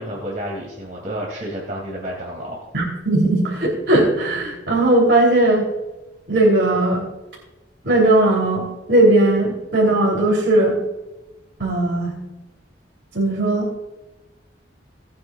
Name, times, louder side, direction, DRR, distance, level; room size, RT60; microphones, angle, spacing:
voice 1, 0.0-2.6, equal, 45° right, -3 dB, 2.6 m, -30 dB
voice 2, 2.7-5.6 6.3-7.0 7.8-8.6 8.9-10.8 11.6-12.1 13.1-13.7, right 1 dB, 70° right, -4 dB, 3.4 m, -17 dB
19.0 x 9.5 x 2.4 m, 1.0 s
head